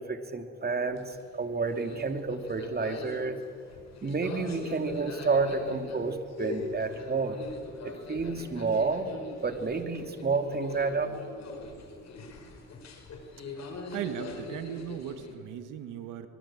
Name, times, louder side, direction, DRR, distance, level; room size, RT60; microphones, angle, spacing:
voice 1, 0.0-3.4 4.0-7.4 7.8-9.1 9.4-11.1, right 4 dB, 30° right, 7 dB, 2.7 m, -30 dB
sound 1, 0.9-15.4, left 3 dB, 60° left, 5.3 m, -42 dB
voice 2, 13.5-16.3, right 9 dB, 85° right, 9 dB, 1.8 m, -38 dB
25.5 x 22.5 x 8.8 m, 2.3 s
cardioid pair, 90°, 30 cm